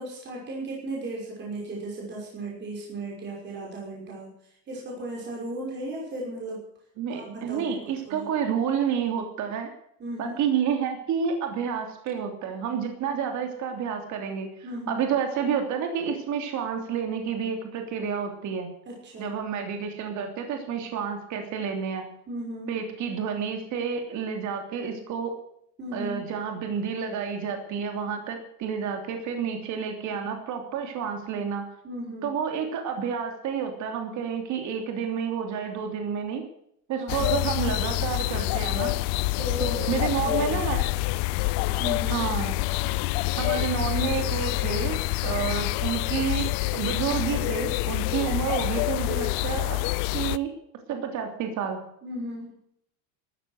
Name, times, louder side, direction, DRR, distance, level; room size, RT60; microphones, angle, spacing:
voice 1, 0.0-6.6 7.1-7.7 8.0-8.3 10.0-10.4 14.6-15.0 18.9-19.3 22.3-22.7 25.8-26.3 31.8-32.3 37.0-37.4 39.4-40.7 41.8-42.2 48.3-48.5 52.0-52.5, right 1 dB, 25° right, -3 dB, 5.9 m, -36 dB
voice 2, 7.0-9.7 10.2-18.7 19.2-22.0 22.7-25.3 25.9-31.7 32.2-36.4 36.9-38.9 39.6-40.8 42.1-42.6 43.4-49.8 50.1-50.5 50.9-51.8, right 7 dB, 40° right, 4 dB, 3.1 m, -29 dB
sound 1, 37.1-50.4, left 20 dB, 55° left, 0.7 m, -27 dB
14.5 x 14.0 x 6.6 m, 0.71 s
cardioid pair, 160°, 44 cm